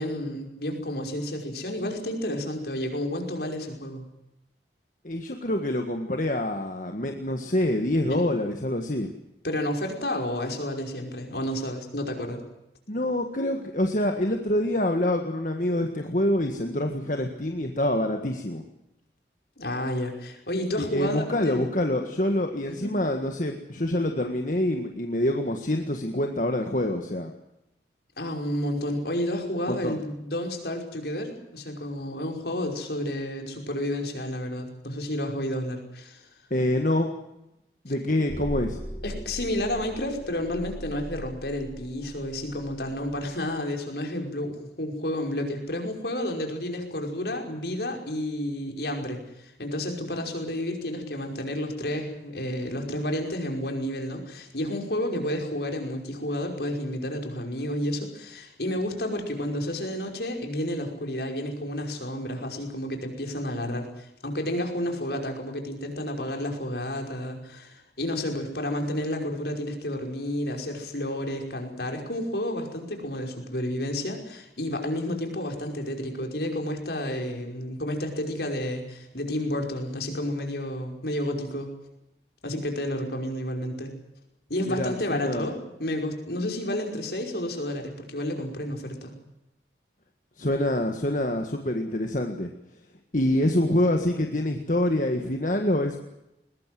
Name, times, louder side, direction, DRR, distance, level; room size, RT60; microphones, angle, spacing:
voice 1, 0.0-4.0 8.1-8.3 9.4-12.4 19.6-22.1 22.8-22.9 28.2-36.3 39.0-81.7 82.4-83.9 84.5-89.1, left 1 dB, 65° left, 3 dB, 5.3 m, -31 dB
voice 2, 5.0-9.1 12.9-18.6 20.8-27.3 29.7-30.0 36.5-37.1 37.8-38.8 84.7-85.5 90.4-92.5 93.1-96.0, left 1 dB, 45° left, 4 dB, 1.7 m, -26 dB
sound 1, 38.3-43.2, equal, 5° right, 4.4 m, -39 dB
21.5 x 21.0 x 7.7 m, 0.89 s
head